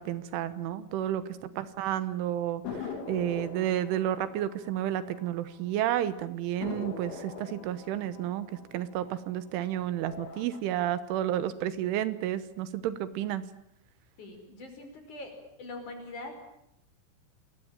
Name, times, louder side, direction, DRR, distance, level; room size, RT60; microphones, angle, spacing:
voice 1, 0.0-8.5 8.7-13.4, right 11 dB, 80° right, 13 dB, 3.6 m, -31 dB
voice 2, 1.1-1.6 14.2-15.3 15.6-16.3, left 2 dB, 40° left, 5 dB, 6.3 m, -43 dB
sound 1, 2.6-5.7 6.0-6.1 6.6-9.5 10.0-10.6, left 5 dB, 85° left, 5.8 m, -42 dB
28.5 x 20.5 x 8.9 m, 0.79 s
omnidirectional pair, 5.5 m